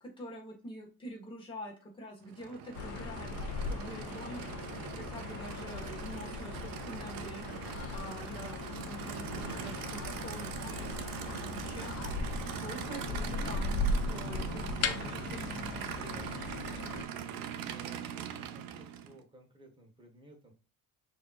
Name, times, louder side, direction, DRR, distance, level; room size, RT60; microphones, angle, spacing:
voice 1, 0.0-3.4 3.7-4.4 4.9-7.6 7.9-11.9 12.6-16.5, equal, 15° left, -2 dB, 1.6 m, -46 dB
Aircraft / Idling, 2.2-19.2, right 8 dB, 70° right, 0.7 m, -41 dB
sound 1, 2.8-17.0, left 3 dB, 40° left, 0.5 m, -38 dB
voice 2, 17.7-20.5, right 1 dB, 15° right, 1 dB, 1.2 m, -58 dB
6.4 x 2.9 x 2.4 m, 0.34 s
cardioid pair, 165°, 36 cm